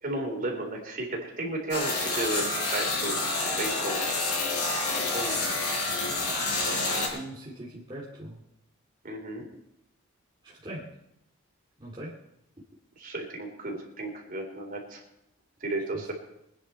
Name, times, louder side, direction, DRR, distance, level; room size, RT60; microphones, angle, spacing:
voice 1, 0.0-3.2 3.6-4.0 5.1-5.4 9.0-9.4 13.0-15.0 15.6-16.1, right 2 dB, 40° right, 1 dB, 3.6 m, -33 dB
sound 1, 1.7-7.1, left 2 dB, 85° left, 6.3 m, -28 dB
voice 2, 6.9-8.4 10.4-10.9 11.8-12.2 15.9-16.1, right 1 dB, 20° right, -6 dB, 2.3 m, -41 dB
24.0 x 9.9 x 4.4 m, 0.79 s
head